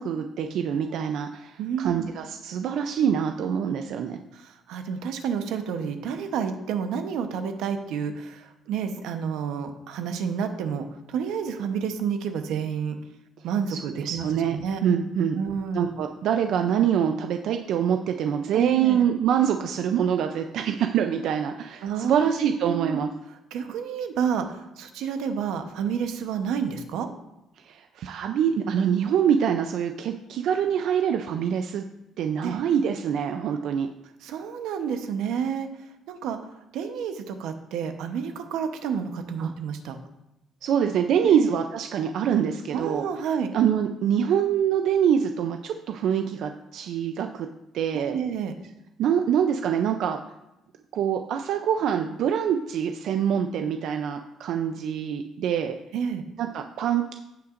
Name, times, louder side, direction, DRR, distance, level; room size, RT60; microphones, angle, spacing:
voice 1, 0.0-4.2 13.7-14.6 14.8-15.4 15.7-23.1 27.6-31.8 32.2-33.9 39.4-39.5 40.6-43.1 43.5-47.5 47.7-48.2 49.0-50.2 50.9-55.8 56.4-57.1, right 8 dB, 60° right, 5 dB, 0.5 m, -25 dB
voice 2, 1.6-2.1 4.3-13.0 13.4-14.8 15.3-15.9 18.5-19.0 21.8-22.3 22.6-23.0 23.5-27.1 32.4-32.6 34.2-35.7 36.1-36.4 36.7-40.0 41.2-41.5 42.7-43.5 47.9-48.5 55.9-56.2, right 7 dB, 85° right, 7 dB, 0.9 m, -30 dB
16.0 x 5.7 x 2.5 m, 0.93 s
cardioid pair, 175°, 0 cm